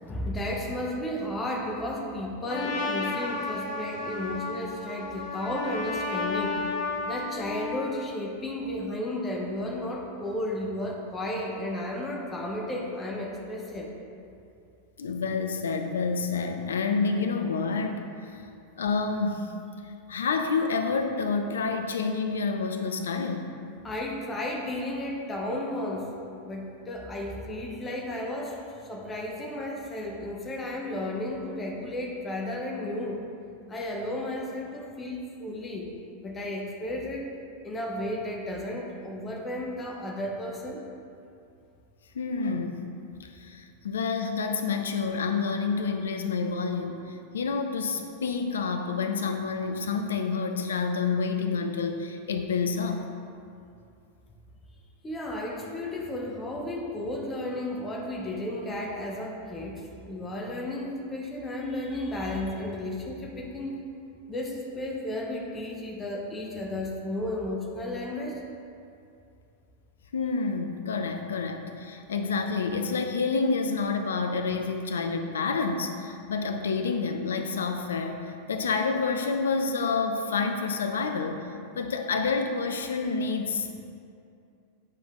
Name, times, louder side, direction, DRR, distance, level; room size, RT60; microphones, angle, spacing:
voice 1, 0.0-6.6 7.0-13.9 23.8-26.2 26.4-33.2 33.7-35.9 36.2-37.3 37.6-40.8 55.0-63.8 64.3-68.4, left 1 dB, 15° left, -1 dB, 0.9 m, -33 dB
Trumpet, 2.5-7.9, left 3 dB, 45° left, 1.0 m, -32 dB
voice 2, 15.0-18.4 18.8-19.5 20.1-23.5 42.1-42.8 43.2-53.1 70.1-81.4 81.8-83.8, left 4 dB, 65° left, 6 dB, 0.6 m, -28 dB
9.1 x 5.1 x 3.7 m, 2.5 s
figure-of-eight pair, 90°, 0 cm